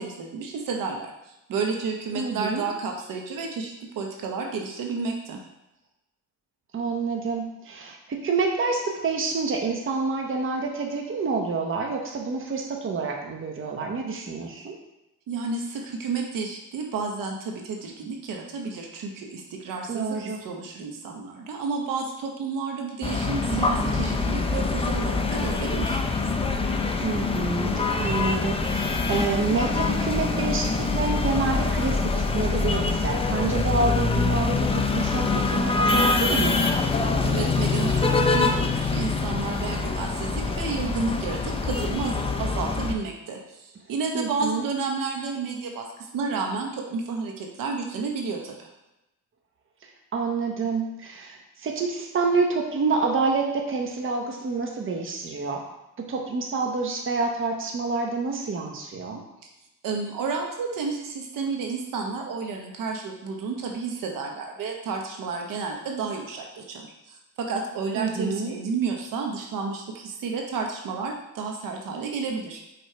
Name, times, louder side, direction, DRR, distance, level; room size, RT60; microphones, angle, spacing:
voice 1, 0.0-5.4 15.3-26.0 37.2-48.7 59.8-72.6, right 4 dB, 65° right, 1 dB, 1.1 m, -31 dB
voice 2, 2.1-2.6 6.7-14.8 19.9-20.4 23.5-24.1 27.0-36.6 44.1-44.7 49.8-55.7 56.0-59.2 67.9-68.5, right 4 dB, 35° right, 1 dB, 1.0 m, -28 dB
sound 1, 23.0-42.9, left 3 dB, 15° left, 0.5 m, -25 dB
5.1 x 4.3 x 4.5 m, 0.93 s
cardioid pair, 100°, 35 cm